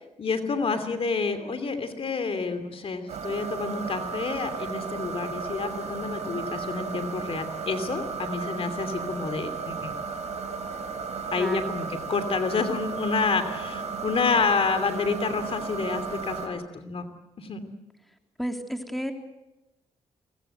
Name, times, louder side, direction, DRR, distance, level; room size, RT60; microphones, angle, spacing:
voice 1, 0.2-10.0 11.3-17.0 17.4-17.6, left 4 dB, 50° left, 9 dB, 2.9 m, -29 dB
sound 1, 3.1-16.5, right 5 dB, 70° right, 4.4 m, -34 dB
voice 2, 11.4-11.7 18.4-19.1, equal, ahead, 4 dB, 3.3 m, -32 dB
24.0 x 20.5 x 8.0 m, 0.96 s
cardioid pair, 65°, 12 cm